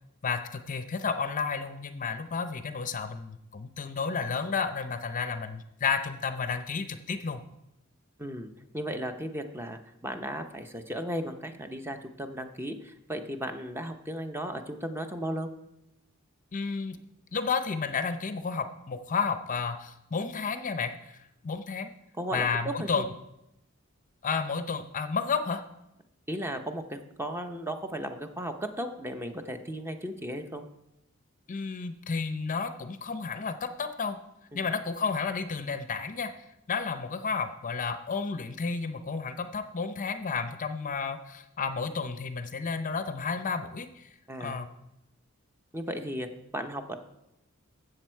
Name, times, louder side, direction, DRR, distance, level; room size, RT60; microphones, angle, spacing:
voice 1, 0.2-7.4 16.5-17.0 17.3-21.9 22.3-23.1 24.2-25.7 31.5-34.2 34.5-36.3 36.7-44.1 44.4-44.7, left 5 dB, 40° left, 9 dB, 0.6 m, -32 dB
voice 2, 8.2-15.5 22.2-23.0 26.3-30.6 34.5-34.7 44.3-44.6 45.7-46.3 46.5-47.0, right 1 dB, 10° right, 6 dB, 0.7 m, -35 dB
13.5 x 7.7 x 4.5 m, 0.90 s
head